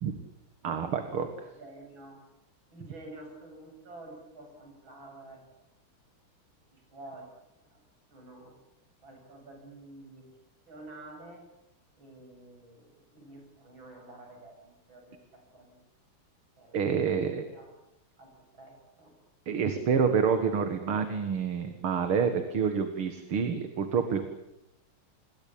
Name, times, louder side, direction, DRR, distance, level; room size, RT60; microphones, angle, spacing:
voice 1, 0.6-1.3 16.7-17.4 19.5-24.3, right 6 dB, 85° right, 7 dB, 2.7 m, -28 dB
voice 2, 1.4-2.2 2.7-5.4 6.7-7.3 7.7-7.8 8.1-8.5 9.0-10.3 10.7-11.4 12.0-15.8 16.6-17.2 17.4-17.7 18.2-19.1, right 2 dB, 65° right, 2 dB, 8.7 m, -49 dB
27.5 x 21.5 x 8.8 m, 0.90 s
omnidirectional pair, 2.3 m